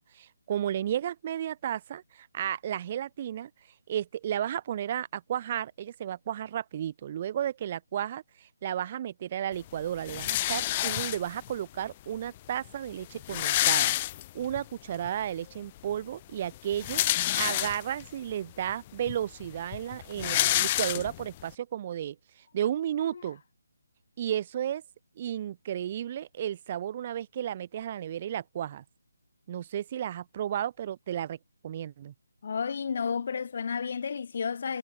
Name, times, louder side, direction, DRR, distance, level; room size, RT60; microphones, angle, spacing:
voice 1, 0.1-3.5 3.9-13.9 14.3-22.2 22.5-23.4 24.2-24.8 25.2-28.8 29.5-31.4 31.6-32.1, right 10 dB, 30° right, 6.1 m, -33 dB
sound 1, 10.1-11.5 12.4-12.5 12.7-12.8 13.0-14.6 15.0-15.1 16.5-18.1 18.7-18.8 19.1-21.4, left 15 dB, 25° left, 1.5 m, -28 dB
voice 2, 32.4-34.8, left 6 dB, 45° left, 2.8 m, -31 dB
figure-of-eight pair, 150°, 0 cm